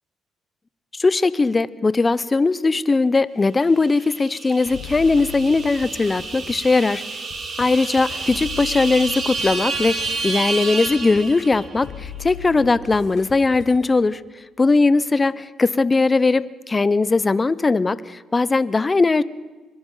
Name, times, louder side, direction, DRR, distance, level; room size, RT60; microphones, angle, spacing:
voice 1, 0.9-7.0 7.6-14.2 14.6-19.2, left 3 dB, 25° left, 17 dB, 0.7 m, -19 dB
sound 1, 3.8-11.8, right 4 dB, 50° right, 4.2 m, -29 dB
sound 2, 4.6-13.8, left 7 dB, 80° left, 4.7 m, -39 dB
22.5 x 22.5 x 5.6 m, 1.2 s
cardioid pair, 90°, 0 cm